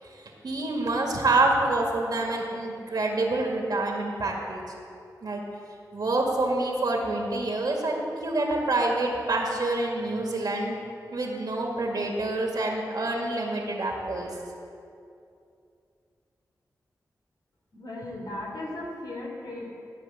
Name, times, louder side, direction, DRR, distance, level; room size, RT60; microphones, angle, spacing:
voice 1, 0.4-4.6 5.2-5.4 5.9-10.8 11.1-14.4, right 2 dB, 70° right, 0 dB, 2.1 m, -27 dB
voice 2, 17.7-19.7, left 1 dB, 70° left, -2 dB, 3.1 m, -36 dB
14.0 x 5.0 x 8.7 m, 2.5 s
cardioid pair, 60°, 7 cm